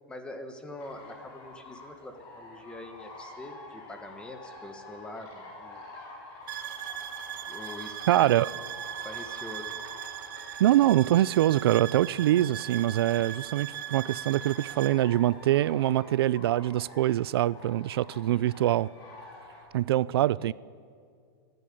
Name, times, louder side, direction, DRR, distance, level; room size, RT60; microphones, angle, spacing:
voice 1, 0.1-5.9 7.5-8.5 9.0-9.8 18.1-18.5 20.2-20.5, left 2 dB, 10° left, 1.6 m, -44 dB
sound 1, 0.7-19.6, left 2 dB, 35° left, 5.6 m, -48 dB
sound 2, 6.5-15.0, right 11 dB, 55° right, 1.2 m, -39 dB
voice 2, 8.1-8.5 10.6-18.9 19.7-20.5, right 13 dB, 90° right, 0.4 m, -24 dB
27.5 x 11.0 x 8.6 m
supercardioid pair, 160°, 12 cm